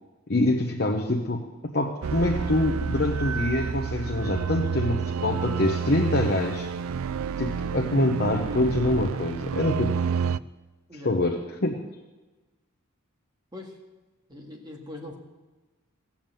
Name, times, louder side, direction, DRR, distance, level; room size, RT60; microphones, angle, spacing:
voice 1, 0.3-1.4 1.7-6.7 7.4-10.0 11.0-11.8, left 2 dB, 45° left, 2 dB, 1.0 m, -25 dB
sound 1, 2.0-10.4, right 6 dB, 70° right, 0.4 m, -29 dB
voice 2, 14.3-15.2, left 1 dB, 20° right, 0 dB, 1.9 m, -41 dB
16.5 x 7.2 x 9.0 m, 1.2 s
head